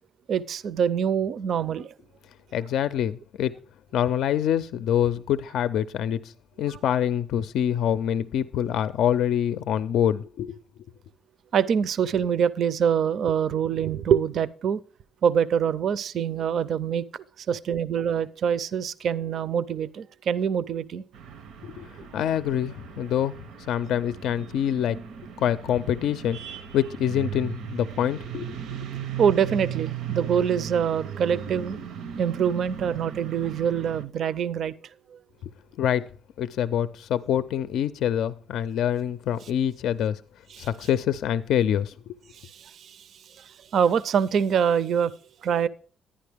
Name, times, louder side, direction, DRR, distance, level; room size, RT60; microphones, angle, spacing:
voice 1, 0.3-1.9 11.5-14.8 15.2-21.0 29.2-31.8 32.2-34.7 35.1-35.2 40.5-40.7 42.3-45.1 45.4-45.7, right 8 dB, 55° right, 0.4 m, -25 dB
voice 2, 2.5-3.5 3.9-6.3 6.6-10.6 21.6-23.3 23.7-25.0 25.4-28.6 35.8-36.0 36.4-40.2 40.6-42.2, left 10 dB, 80° left, 0.4 m, -25 dB
sound 1, 21.1-34.0, right 9 dB, 90° right, 0.8 m, -37 dB
11.5 x 9.9 x 3.4 m
cardioid pair, 170°, 0 cm